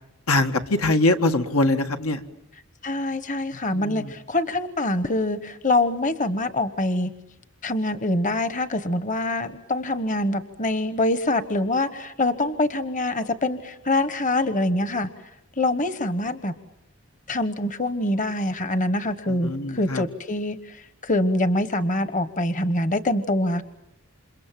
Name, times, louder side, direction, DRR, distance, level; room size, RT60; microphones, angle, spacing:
voice 1, 0.3-2.2 3.7-4.1 19.3-20.0, left 2 dB, 85° left, 6 dB, 1.8 m, -23 dB
voice 2, 2.8-7.1 7.6-15.1 15.6-16.5 17.3-23.6, left 2 dB, 35° left, 12 dB, 1.2 m, -25 dB
29.0 x 27.0 x 7.6 m, 0.85 s
head